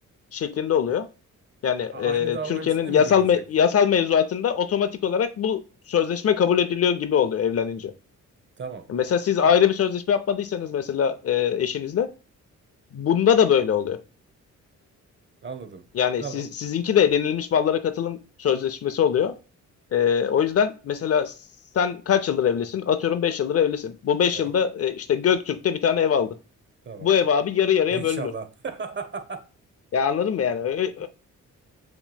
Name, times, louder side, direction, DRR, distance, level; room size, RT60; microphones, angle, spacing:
voice 1, 0.3-1.1 1.6-5.6 5.9-7.9 8.9-12.1 12.9-14.0 15.9-19.3 19.9-21.3 21.7-26.4 27.0-28.3 29.9-31.1, left 8 dB, 50° left, 0.6 m, -22 dB
voice 2, 1.9-3.4 8.6-8.9 15.4-15.8 16.2-16.5 24.3-24.5 26.8-27.1 27.9-29.5 31.0-31.1, right 5 dB, 40° right, 0.8 m, -35 dB
7.0 x 3.0 x 2.3 m
cardioid pair, 105°, 31 cm